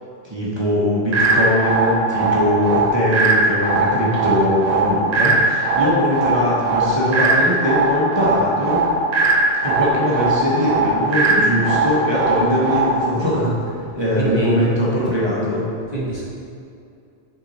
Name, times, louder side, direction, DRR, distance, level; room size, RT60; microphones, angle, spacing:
voice 1, 0.2-8.8 9.6-13.5 14.0-15.6, equal, 25° right, -8 dB, 1.0 m, -21 dB
sound 1, 1.1-13.1, right 2 dB, 50° right, 0.5 m, -19 dB
voice 2, 13.9-14.6 15.9-16.3, equal, 40° left, -7 dB, 1.1 m, -25 dB
6.1 x 4.8 x 4.1 m, 2.5 s
omnidirectional pair, 1.2 m